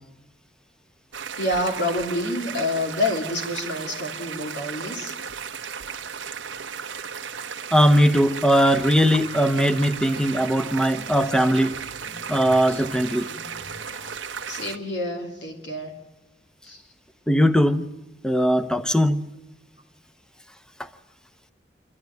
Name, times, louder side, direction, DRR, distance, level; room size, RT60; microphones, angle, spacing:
sound 1, 1.1-14.8, right 7 dB, 85° right, 0.9 m, -35 dB
voice 1, 1.4-5.1 14.5-15.9 16.6-16.8, left 1 dB, 75° left, 2.6 m, -28 dB
voice 2, 7.7-11.8 12.3-13.3 17.3-17.9 18.2-19.2 20.8-20.9, equal, 5° left, 0.8 m, -20 dB
sound 2, 8.6-14.2, left 1 dB, 30° left, 1.5 m, -46 dB
28.0 x 12.5 x 9.4 m
head